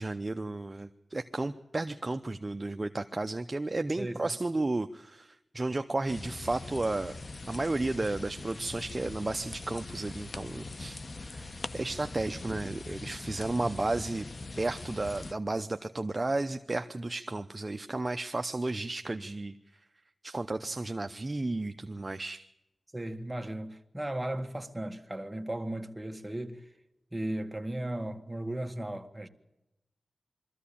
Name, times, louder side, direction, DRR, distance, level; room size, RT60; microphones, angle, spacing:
voice 1, 0.0-7.2 7.5-14.3 14.6-19.8 20.2-22.5, right 2 dB, 30° right, 0.8 m, -33 dB
sound 1, 6.1-15.3, left 3 dB, 50° left, 1.0 m, -42 dB
voice 2, 22.9-26.6 27.1-29.3, right 1 dB, 15° right, 1.9 m, -36 dB
23.5 x 14.0 x 8.6 m
wide cardioid pair, 70°, 0 cm